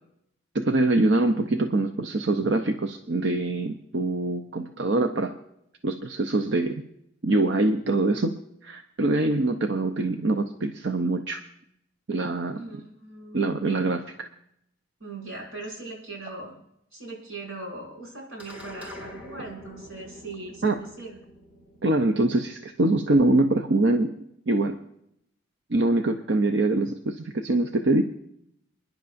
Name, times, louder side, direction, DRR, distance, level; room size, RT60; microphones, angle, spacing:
voice 1, 0.5-5.3 5.8-6.8 7.2-8.3 8.6-11.4 12.1-12.6 13.3-14.3 20.6-20.8 21.8-24.1 24.5-24.8 25.7-28.0, right 2 dB, 60° right, 6 dB, 0.6 m, -24 dB
voice 2, 12.6-13.4 15.0-16.6 16.9-21.2, right 2 dB, 85° right, -3 dB, 6.0 m, -40 dB
sound 1, 18.4-23.0, left 1 dB, 10° right, 1.6 m, -45 dB
29.0 x 10.5 x 2.6 m, 0.76 s
head